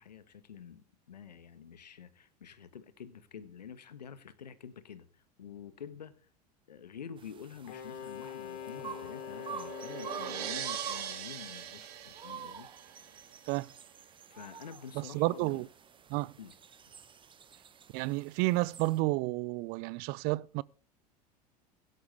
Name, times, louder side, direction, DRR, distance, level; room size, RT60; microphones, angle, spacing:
voice 1, 0.0-6.1 6.7-12.7 14.3-15.6 16.4-16.5, left 7 dB, 85° left, 1.3 m, -48 dB
sound 1, 7.2-19.0, right 7 dB, 25° right, 1.1 m, -48 dB
Wind instrument woodwind instrument, 7.7-10.8, left 9 dB, 60° left, 3.8 m, -43 dB
sound 2, 8.4-13.5, right 9 dB, 70° right, 2.6 m, -42 dB
voice 2, 14.9-15.7 16.1-16.3 17.9-20.6, right 21 dB, 50° right, 0.5 m, -31 dB
16.5 x 12.0 x 3.4 m
hypercardioid pair, 85°, 21 cm